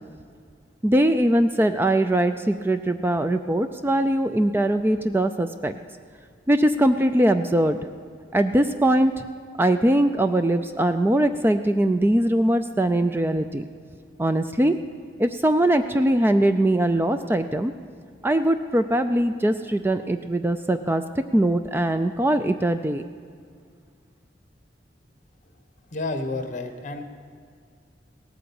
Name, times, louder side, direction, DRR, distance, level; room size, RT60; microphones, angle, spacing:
voice 1, 0.8-5.7 6.5-7.8 8.3-9.3 9.6-13.6 14.2-14.8 15.2-17.7 18.2-21.0 21.3-23.0, right 1 dB, 10° right, 9 dB, 0.4 m, -21 dB
voice 2, 25.9-27.0, left 2 dB, 45° left, 7 dB, 1.2 m, -30 dB
17.5 x 8.7 x 7.0 m, 2.1 s
head